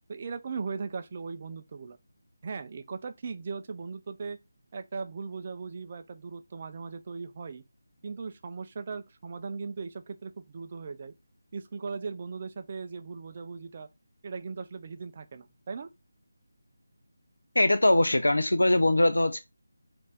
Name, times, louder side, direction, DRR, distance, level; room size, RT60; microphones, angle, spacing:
voice 1, 0.1-2.0 2.4-4.4 4.7-7.6 8.0-11.1 11.5-13.9 14.2-15.9, right 5 dB, 35° right, 0.4 m, -38 dB
voice 2, 17.6-19.4, left 1 dB, 70° left, 0.4 m, -22 dB
3.0 x 2.6 x 3.7 m
figure-of-eight pair, 155°, 0 cm